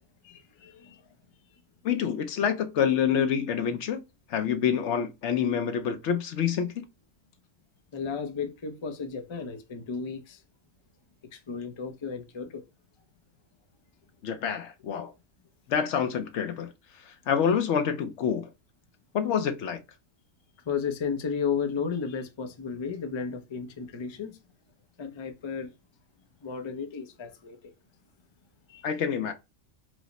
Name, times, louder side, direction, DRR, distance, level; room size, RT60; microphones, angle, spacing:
voice 1, 0.2-0.9 7.9-10.4 11.5-12.6 20.7-24.3 25.0-25.7 26.4-27.6 28.7-28.8, left 6 dB, 45° left, 0.3 m, -33 dB
voice 2, 1.8-4.0 4.3-6.8 14.2-15.1 15.7-16.7 17.1-18.5 19.1-19.8 28.8-29.3, left 7 dB, 70° left, 0.8 m, -27 dB
4.7 x 2.0 x 4.0 m
omnidirectional pair, 1.4 m